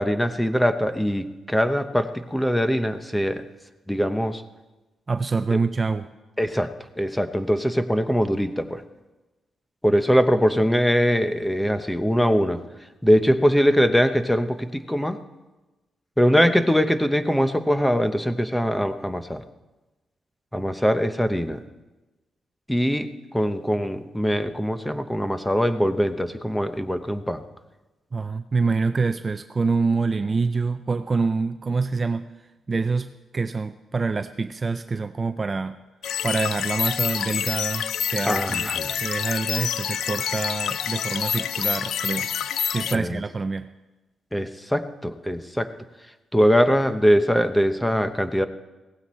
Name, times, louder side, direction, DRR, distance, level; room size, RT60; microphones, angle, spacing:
voice 1, 0.0-3.5 3.9-4.4 5.5-5.6 6.4-8.8 9.8-12.6 13.0-15.2 16.2-19.4 20.5-21.6 22.7-27.4 38.3-39.0 42.9-43.2 44.3-45.7 46.3-48.5, equal, 5° left, 10 dB, 0.7 m, -22 dB
voice 2, 5.1-6.1 28.1-32.3 32.7-35.8 36.2-38.7 39.0-42.3 42.7-43.7, right 4 dB, 25° right, 10 dB, 0.4 m, -26 dB
sound 1, 36.0-43.0, left 8 dB, 75° left, 0.4 m, -27 dB
17.0 x 15.5 x 4.3 m, 1.1 s
wide cardioid pair, 155°, 0 cm